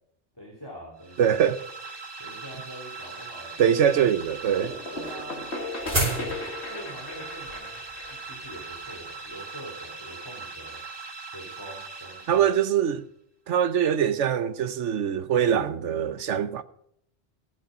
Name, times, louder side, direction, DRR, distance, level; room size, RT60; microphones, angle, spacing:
voice 1, 0.3-1.4 2.2-3.9 4.9-5.4 6.7-10.8 11.3-12.5, right 1 dB, 20° left, 3.0 m, -44 dB
sound 1, 1.0-12.8, right 4 dB, 20° right, 1.7 m, -41 dB
voice 2, 1.2-1.6 3.6-4.7 12.3-13.1 13.5-16.6, right 8 dB, 85° right, 1.2 m, -23 dB
sound 2, 4.2-9.4, right 1 dB, 45° right, 5.1 m, -33 dB
sound 3, 4.6-10.2, left 2 dB, 70° left, 2.3 m, -37 dB
15.5 x 8.4 x 5.0 m
omnidirectional pair, 1.2 m